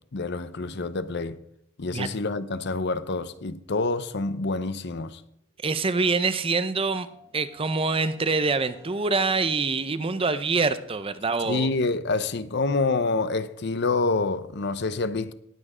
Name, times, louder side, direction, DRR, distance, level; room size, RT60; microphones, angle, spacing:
voice 1, 0.1-1.4 1.8-5.2 11.5-15.3, left 3 dB, 55° left, 0.7 m, -27 dB
voice 2, 5.6-7.1 7.3-11.7, right 4 dB, 25° right, 0.6 m, -25 dB
sound 1, 6.9-12.0, equal, 45° right, 6.6 m, -53 dB
18.5 x 8.8 x 5.0 m
head